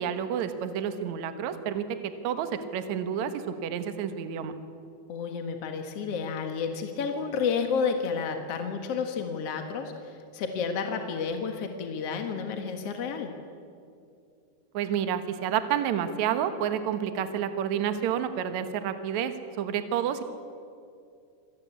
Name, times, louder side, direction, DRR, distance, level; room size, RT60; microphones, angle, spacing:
voice 1, 0.0-4.5 14.7-20.2, right 9 dB, 90° right, 9 dB, 1.6 m, -29 dB
voice 2, 5.1-13.3, left 5 dB, 65° left, 5 dB, 1.5 m, -31 dB
26.5 x 17.5 x 8.2 m, 2.4 s
omnidirectional pair, 5.2 m